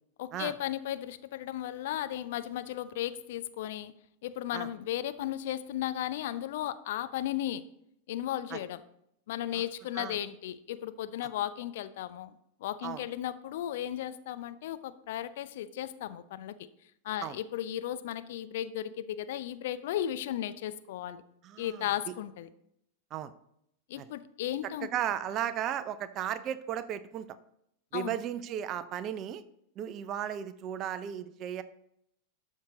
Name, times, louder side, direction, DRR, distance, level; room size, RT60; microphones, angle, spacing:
voice 1, 0.2-3.9 4.2-7.6 8.1-8.8 9.3-16.7 17.0-21.2 21.6-22.5 23.9-24.9 27.9-28.2, left 12 dB, 55° left, 12 dB, 0.5 m, -35 dB
voice 2, 21.4-21.9 23.1-23.3 24.0-24.1 24.8-27.4 27.9-29.4 29.8-31.6, right 10 dB, 35° right, 14 dB, 0.6 m, -35 dB
12.5 x 6.4 x 3.9 m, 0.75 s
figure-of-eight pair, 90°, 0 cm